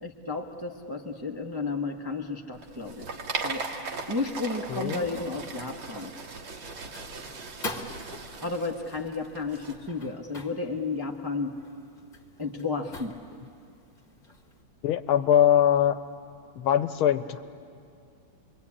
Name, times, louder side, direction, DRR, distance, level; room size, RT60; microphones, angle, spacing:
voice 1, 0.0-3.1 3.4-3.6 4.1-6.1 8.4-11.5 12.4-13.1, left 3 dB, 15° right, 1 dB, 0.8 m, -32 dB
sound 1, 2.6-9.7, right 4 dB, 75° right, 2.4 m, -38 dB
sound 2, 3.4-14.6, left 1 dB, 25° left, 1.4 m, -46 dB
voice 2, 4.7-5.2 14.8-16.0 16.6-17.4, left 10 dB, 80° left, 11 dB, 1.7 m, -22 dB
27.0 x 23.0 x 8.6 m, 2.3 s
omnidirectional pair, 2.3 m